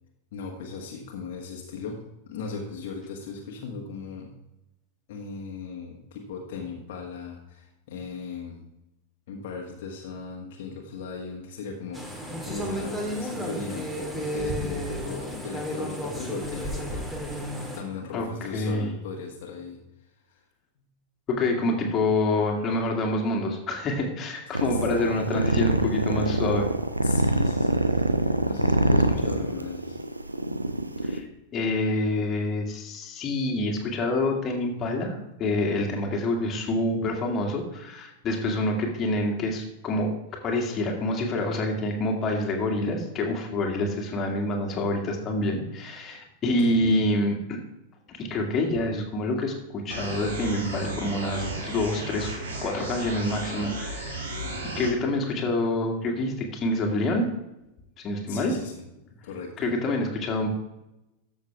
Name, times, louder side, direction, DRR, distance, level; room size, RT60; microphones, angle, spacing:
voice 1, 0.3-2.0 2.3-4.3 5.1-8.6 9.3-19.8 20.3-20.4 24.5-24.8 27.0-30.0 30.5-30.6 46.4-47.0 58.3-58.9 59.2-59.7, left 5 dB, 55° left, 0 dB, 1.5 m, -38 dB
sound 1, 11.9-17.8, equal, 10° right, 1.9 m, -32 dB
voice 2, 18.5-18.9 21.3-26.7 31.0-31.3 31.5-47.6 48.1-52.3 52.6-54.3 54.8-57.3 58.0-58.5 59.6-60.5, left 1 dB, 30° left, 0 dB, 2.0 m, -27 dB
sound 2, 24.5-31.2, right 1 dB, 85° right, 0.7 m, -25 dB
sound 3, 49.9-54.9, right 1 dB, 65° right, 2.1 m, -34 dB
13.5 x 6.4 x 3.4 m, 0.91 s
figure-of-eight pair, 90°, 0 cm